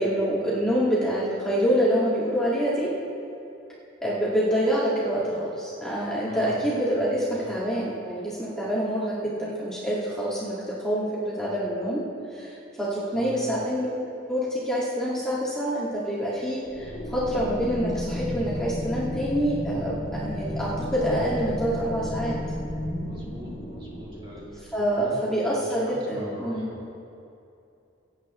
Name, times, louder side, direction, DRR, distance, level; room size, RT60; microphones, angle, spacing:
voice 1, 0.0-2.9 4.0-12.1 12.3-14.0 14.3-22.4 24.7-26.7, equal, 5° left, -8 dB, 1.9 m, -26 dB
voice 2, 6.2-6.6 7.2-7.5 13.1-13.4 23.0-24.6 24.9-25.2 25.5-26.8, equal, 25° right, -6 dB, 2.6 m, -43 dB
sound 1, 16.7-24.9, left 1 dB, 55° left, 2.1 m, -33 dB
25.0 x 8.8 x 3.1 m, 2.7 s
head